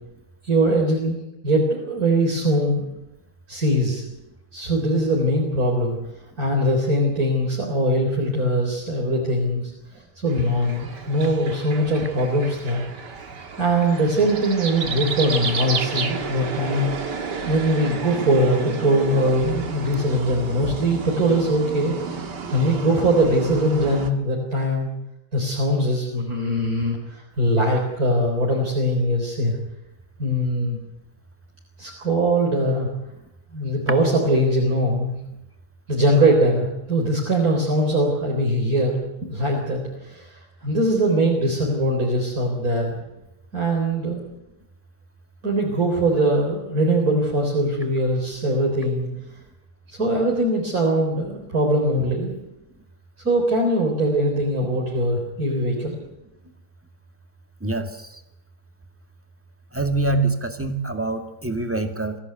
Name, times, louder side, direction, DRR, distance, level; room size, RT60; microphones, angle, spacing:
voice 1, 0.4-2.9 3.5-4.1 4.5-6.0 6.4-9.6 9.9-12.8 13.6-22.2 22.5-24.9 25.3-29.6 30.2-30.8 31.8-32.9 33.5-35.2 35.9-39.0 39.3-42.9 43.5-44.2 45.4-49.1 49.9-52.4 53.2-56.0, right 1 dB, 55° right, -1 dB, 4.3 m, -21 dB
sound 1, 10.3-24.1, right 5 dB, 80° right, 2.6 m, -32 dB
voice 2, 57.6-58.2 59.7-62.2, right 2 dB, 10° right, 5 dB, 2.0 m, -25 dB
24.5 x 15.0 x 9.1 m, 0.91 s
omnidirectional pair, 1.8 m